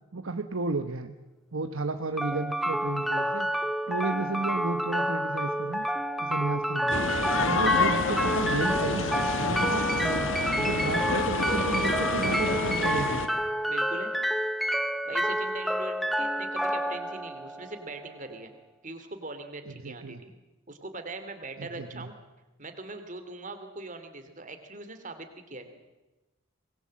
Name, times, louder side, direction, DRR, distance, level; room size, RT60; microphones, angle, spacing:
voice 1, 0.1-1.1 1.5-3.5 3.9-5.9 6.2-9.1 9.4-10.3 10.5-13.3 19.7-20.2 21.6-22.1, right 3 dB, 70° right, 8 dB, 1.0 m, -33 dB
sound 1, 2.2-18.2, equal, ahead, 0.9 m, -29 dB
sound 2, 6.9-13.3, left 3 dB, 65° left, 1.8 m, -28 dB
voice 2, 13.7-14.1 15.1-18.5 18.8-20.3 20.7-22.1 22.6-25.9, right 2 dB, 35° right, 8 dB, 2.6 m, -41 dB
24.0 x 20.5 x 7.6 m, 1.1 s
head